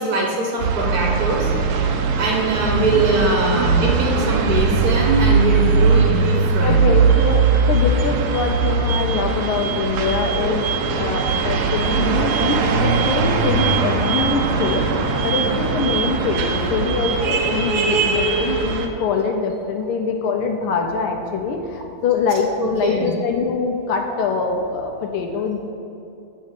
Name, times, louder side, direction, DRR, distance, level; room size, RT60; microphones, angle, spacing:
voice 1, 0.0-1.5 2.2-6.8 22.6-23.1, right 1 dB, 55° right, 0 dB, 1.1 m, -21 dB
sound 1, 0.6-18.9, right 5 dB, 80° right, 0.8 m, -20 dB
voice 2, 6.6-14.8 15.2-25.7, left 5 dB, 85° left, 3 dB, 1.5 m, -24 dB
9.0 x 3.2 x 6.6 m, 2.7 s
omnidirectional pair, 2.4 m